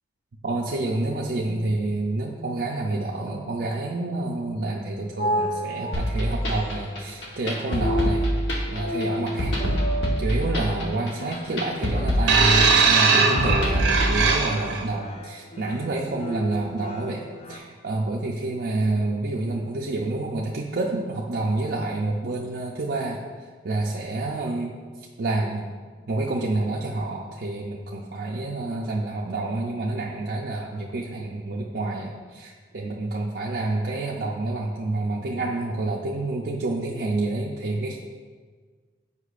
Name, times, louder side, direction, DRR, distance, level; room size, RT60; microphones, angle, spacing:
voice 1, 0.4-8.3 8.7-9.8 10.2-23.2 23.6-24.8 25.2-25.7 26.1-38.0, right 2 dB, 55° right, -3 dB, 0.5 m, -28 dB
sound 1, 4.7-17.6, equal, 35° left, 0.4 m, -33 dB
sound 2, 5.9-14.1, equal, 75° left, 1.0 m, -26 dB
sound 3, 12.3-14.8 15.7-15.9, right 4 dB, 90° right, 0.8 m, -20 dB
8.0 x 5.4 x 2.5 m, 1.5 s
head